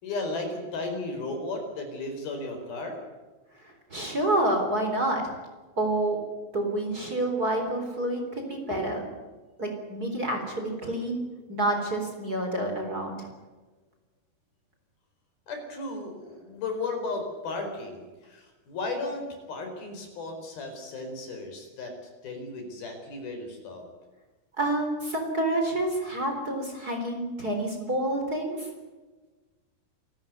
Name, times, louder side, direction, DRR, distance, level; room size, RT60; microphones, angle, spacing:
voice 1, 0.0-3.0 8.7-9.0 15.5-21.9 22.2-23.8, left 2 dB, 70° left, 4 dB, 6.3 m, -35 dB
voice 2, 3.9-5.3 5.8-6.2 6.5-9.0 9.6-11.2 11.5-13.3 24.6-28.7, right 1 dB, 25° right, 3 dB, 4.1 m, -28 dB
28.0 x 14.0 x 9.5 m, 1.3 s
omnidirectional pair, 4.5 m